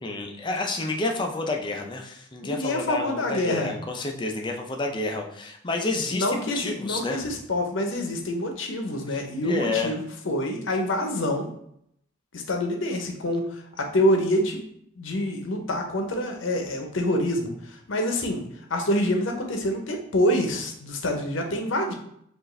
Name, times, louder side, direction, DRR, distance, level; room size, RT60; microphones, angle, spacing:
voice 1, 0.0-7.2 9.1-9.9, left 2 dB, 25° left, 2 dB, 0.5 m, -30 dB
voice 2, 2.4-3.7 6.1-11.5 12.3-14.6 15.0-17.5 17.9-18.4 18.7-21.9, left 1 dB, 70° left, 3 dB, 0.7 m, -26 dB
4.6 x 2.5 x 3.1 m, 0.71 s
head